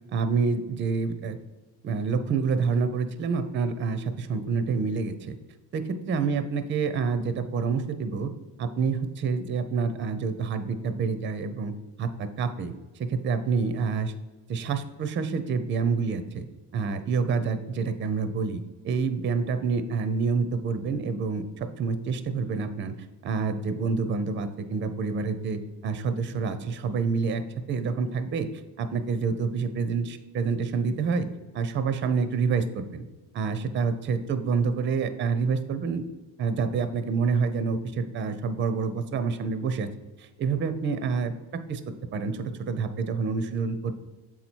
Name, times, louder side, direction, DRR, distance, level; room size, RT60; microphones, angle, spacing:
voice 1, 0.1-1.4 1.8-5.4 5.7-8.3 8.6-11.7 12.0-14.1 14.5-16.5 16.7-22.9 23.2-27.4 27.7-28.5 28.8-31.3 31.5-33.0 33.3-36.0 36.4-39.9 40.2-41.8 42.1-43.9, right 5 dB, 30° right, 10 dB, 0.4 m, -27 dB
7.3 x 4.2 x 4.4 m, 1.2 s
cardioid pair, 140°, 42 cm